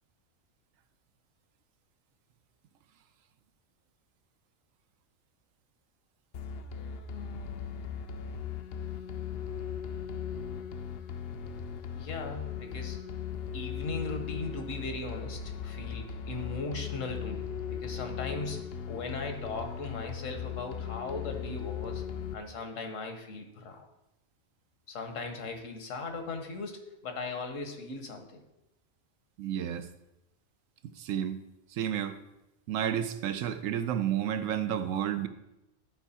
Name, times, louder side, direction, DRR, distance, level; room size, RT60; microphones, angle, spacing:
sound 1, 6.3-22.3, left 7 dB, 60° left, 0.7 m, -38 dB
voice 1, 11.9-13.0 13.5-22.0 22.3-23.8 24.9-28.4, left 3 dB, 75° left, 5 dB, 1.4 m, -38 dB
voice 2, 29.4-29.9 31.0-31.4 31.7-32.2 32.7-35.3, right 10 dB, 80° right, 10 dB, 1.0 m, -31 dB
11.0 x 4.6 x 4.2 m, 0.91 s
omnidirectional pair, 1.3 m